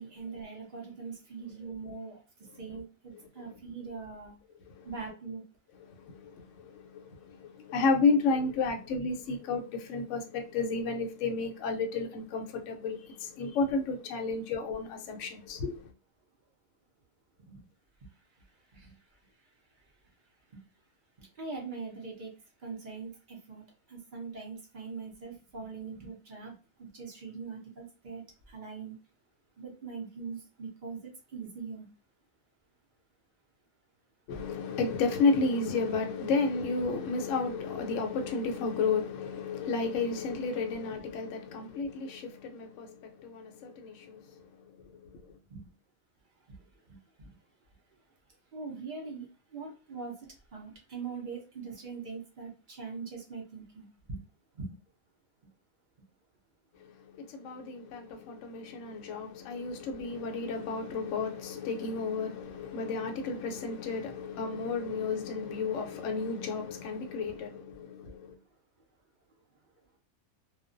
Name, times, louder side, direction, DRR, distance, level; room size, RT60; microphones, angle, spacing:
voice 1, 0.0-4.3 4.8-5.4 17.4-17.6 18.0-18.1 18.7-19.0 20.5-20.6 21.2-22.3 22.6-29.0 29.6-31.9 45.5-45.7 46.5-47.3 48.5-54.2 54.5-54.7, right 4 dB, 50° right, 0.6 m, -42 dB
voice 2, 5.8-15.9 34.3-45.4 56.7-68.4, left 4 dB, 65° left, 0.9 m, -32 dB
2.4 x 2.2 x 2.5 m
omnidirectional pair, 1.5 m